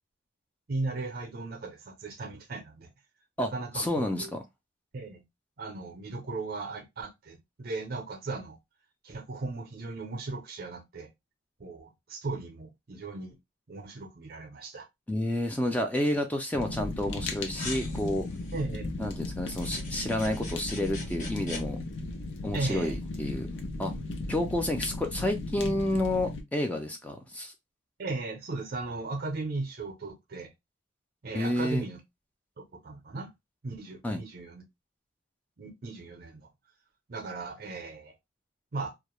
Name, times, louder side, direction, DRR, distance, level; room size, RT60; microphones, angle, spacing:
voice 1, 0.7-2.9 3.4-4.3 4.9-5.2 5.6-8.6 9.0-11.1 11.6-13.4 13.7-14.9 18.5-18.9 22.5-23.0 28.0-30.5 31.2-32.0 32.6-33.3 33.6-34.6 35.6-36.5 37.1-38.1 38.7-38.9, right 3 dB, 50° right, 0.5 m, -37 dB
voice 2, 3.4-4.4 15.1-18.3 19.0-21.8 22.4-23.5 23.8-23.9 24.3-27.5 31.3-31.8 34.0-34.2, left 1 dB, 10° left, 0.3 m, -30 dB
Fire, 16.5-26.4, left 2 dB, 75° left, 0.5 m, -36 dB
sound 1, 17.5-18.6 19.5-21.6, left 2 dB, 40° left, 1.1 m, -42 dB
2.3 x 2.1 x 2.9 m
head